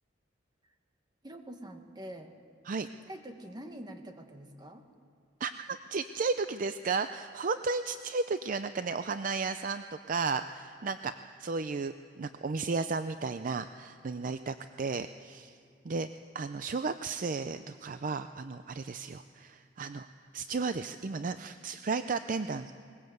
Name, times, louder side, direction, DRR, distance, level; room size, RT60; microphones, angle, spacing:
voice 1, 1.2-2.3 3.0-4.8, right 1 dB, 25° right, 6 dB, 1.4 m, -45 dB
voice 2, 5.4-11.1 11.4-15.5 15.8-16.1 16.3-20.1 20.3-22.7, right 4 dB, 50° right, 10 dB, 0.5 m, -34 dB
20.5 x 19.5 x 7.9 m, 2.4 s
head